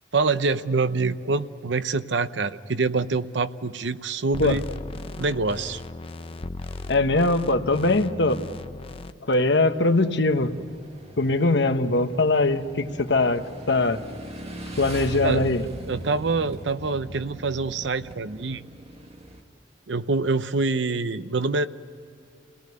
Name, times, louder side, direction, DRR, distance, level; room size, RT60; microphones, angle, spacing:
voice 1, 0.1-4.6 5.2-5.8 15.2-15.4 15.9-18.6 19.9-21.7, right 3 dB, 75° right, 12 dB, 0.8 m, -25 dB
sound 1, 4.3-9.1, left 2 dB, 30° left, 0.6 m, -37 dB
voice 2, 6.9-8.4 9.3-10.5 11.2-14.0 14.8-15.6, left 2 dB, 65° left, 7 dB, 1.2 m, -21 dB
Motorcycle / Engine, 9.6-19.4, right 1 dB, 35° right, 2.0 m, -40 dB
29.5 x 18.5 x 9.5 m, 2.5 s
head